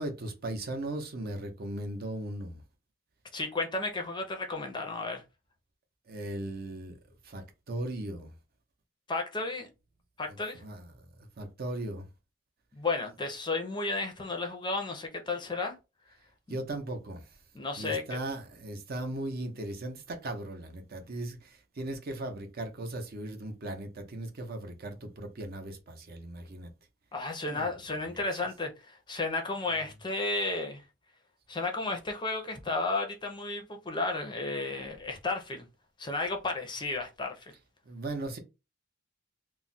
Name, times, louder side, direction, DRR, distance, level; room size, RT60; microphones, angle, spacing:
voice 1, 0.0-2.6 6.1-7.0 7.2-8.3 10.3-11.1 11.4-12.1 16.5-17.4 17.8-26.7 27.5-27.7 37.9-38.4, right 1 dB, 45° right, 0.6 m, -38 dB
voice 2, 3.3-5.2 9.1-9.7 10.2-10.6 12.7-15.7 16.5-16.6 17.5-18.0 27.1-30.8 31.5-35.6 36.0-37.5, left 3 dB, 20° left, 0.5 m, -33 dB
2.3 x 2.1 x 3.9 m
head